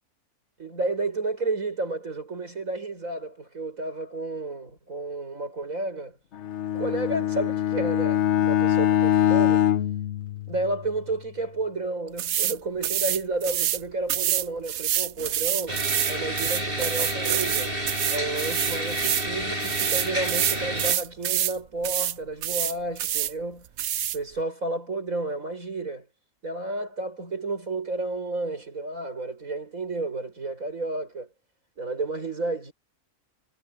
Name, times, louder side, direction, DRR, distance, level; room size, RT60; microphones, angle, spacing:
voice 1, 0.6-6.2 6.7-9.7 10.5-17.8 18.1-23.7 24.1-26.1 26.4-31.3 31.8-32.7, right 2 dB, 90° right, 6.9 m, -31 dB
Bowed string instrument, 6.3-11.0, left 11 dB, 60° left, 1.0 m, -23 dB
sound 1, 12.2-12.6 12.8-13.8 14.1-19.3 19.6-21.6 21.8-22.1 22.4-23.3 23.8-24.2, right 11 dB, 65° right, 0.9 m, -27 dB
sound 2, 15.7-20.9, right 1 dB, 40° right, 7.9 m, -30 dB
omnidirectional pair, 1.4 m